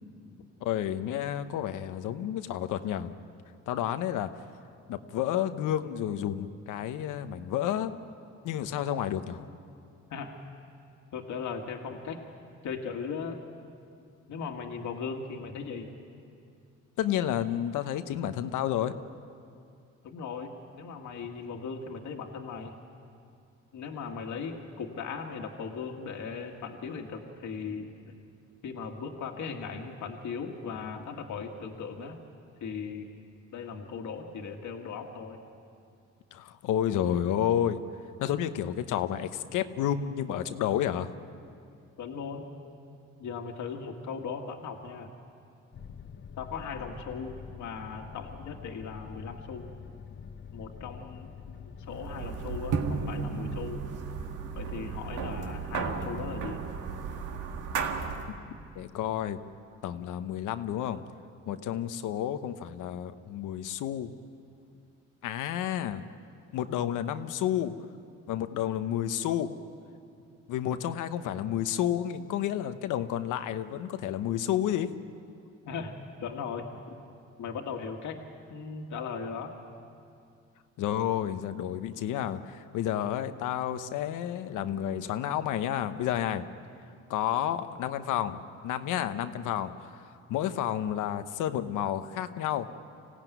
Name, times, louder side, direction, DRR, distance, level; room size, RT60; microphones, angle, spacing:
voice 1, 0.6-3.1 3.7-4.3 4.9-7.9 8.4-9.5 17.0-18.9 36.3-37.8 38.2-41.1 58.8-59.4 59.8-61.0 61.5-64.1 65.2-66.1 66.5-67.7 68.3-69.5 70.5-74.9 80.8-86.5 87.1-89.9 90.3-92.7, left 10 dB, 90° left, 10 dB, 1.0 m, -30 dB
voice 2, 11.1-12.2 12.6-13.4 14.3-15.9 20.0-22.8 23.7-28.1 28.6-32.2 32.6-33.1 33.5-35.4 42.0-42.4 43.2-45.1 46.4-49.7 50.5-53.8 54.5-56.6 75.7-76.7 77.4-78.2 78.5-79.5, left 5 dB, 75° left, 3 dB, 2.0 m, -38 dB
sound 1, 45.7-53.6, left 7 dB, 40° left, 0.8 m, -46 dB
sound 2, 51.9-58.4, right 5 dB, 85° right, 1.8 m, -34 dB
25.5 x 16.5 x 9.3 m, 2.4 s
cardioid pair, 90°, 30 cm